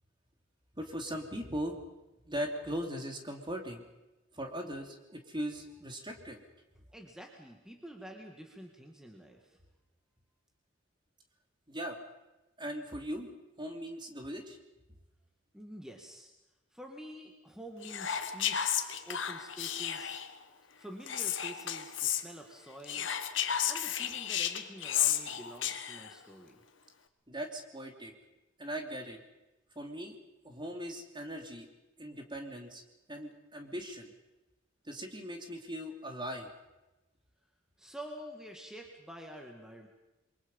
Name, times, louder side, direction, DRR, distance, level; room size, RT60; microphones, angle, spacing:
voice 1, 0.8-1.8 2.3-3.8 4.3-6.4 11.7-12.0 12.6-13.3 13.6-14.6 27.3-28.1 28.6-29.2 29.7-30.2 30.4-31.7 32.0-32.8 33.1-34.1 34.8-36.5, equal, 25° right, 3 dB, 2.9 m, -39 dB
voice 2, 6.9-9.6 15.5-16.3 16.7-20.2 20.8-23.1 23.7-26.6 37.8-39.9, right 1 dB, 5° right, 2 dB, 2.0 m, -48 dB
Whispering, 17.8-20.3 21.1-22.2 22.8-26.1, left 9 dB, 85° left, 1.5 m, -33 dB
28.5 x 23.5 x 5.5 m, 1.0 s
head